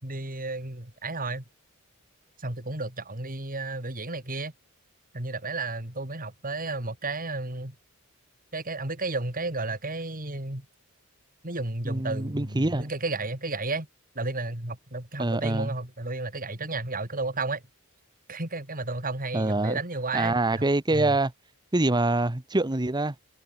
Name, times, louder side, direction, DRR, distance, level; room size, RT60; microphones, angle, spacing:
voice 1, 0.0-1.4 2.4-4.5 5.1-7.7 8.5-10.7 11.4-13.9 14.1-17.6 18.3-20.6 20.9-21.2, right 2 dB, 40° right, 4.7 m, -32 dB
voice 2, 11.8-12.9 15.2-15.7 19.3-19.8 20.1-21.3 21.7-23.1, right 2 dB, 20° right, 1.0 m, -25 dB
head